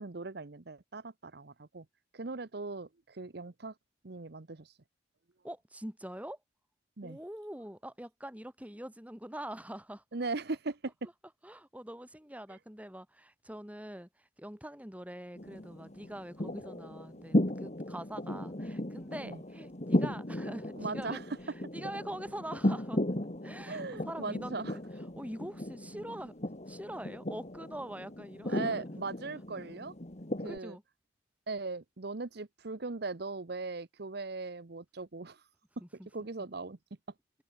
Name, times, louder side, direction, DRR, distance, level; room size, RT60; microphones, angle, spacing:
voice 1, 0.0-1.8 2.1-3.7 4.0-4.8 7.0-7.2 10.1-11.1 19.2-19.4 20.8-21.3 23.7-24.8 28.5-29.9 30.4-30.8 31.5-35.4 36.1-36.8, right 3 dB, 60° right, 0.9 m, -39 dB
voice 2, 5.4-6.4 7.0-10.0 11.4-23.0 23.4-24.7 25.2-26.3 26.7-28.9 30.4-30.8 35.8-36.1, right 1 dB, 10° right, 4.1 m, -44 dB
sound 1, 15.4-30.6, left 1 dB, 35° left, 1.9 m, -36 dB
head